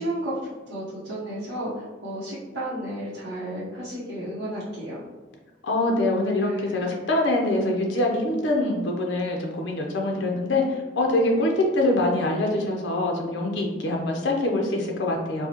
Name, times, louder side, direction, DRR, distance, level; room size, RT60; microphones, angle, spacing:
voice 1, 0.0-5.0 6.4-6.8, right 1 dB, 85° right, -10 dB, 0.9 m, -33 dB
voice 2, 5.6-15.5, left 2 dB, 85° left, 1 dB, 0.6 m, -24 dB
4.6 x 2.1 x 2.8 m, 1.2 s
head